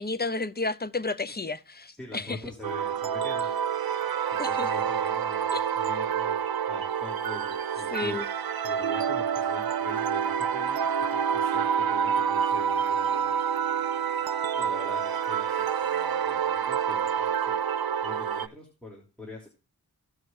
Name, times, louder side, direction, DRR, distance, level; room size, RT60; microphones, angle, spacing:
voice 1, 0.0-2.4 4.4-4.7 5.5-5.6 7.9-8.2, left 3 dB, 25° left, 0.7 m, -31 dB
voice 2, 2.0-3.5 4.4-8.2 8.6-13.6 14.5-17.5 18.0-19.5, left 1 dB, 5° left, 3.1 m, -44 dB
sound 1, 2.6-18.5, right 8 dB, 80° right, 0.6 m, -28 dB
17.0 x 6.5 x 2.6 m
wide cardioid pair, 85°, 36 cm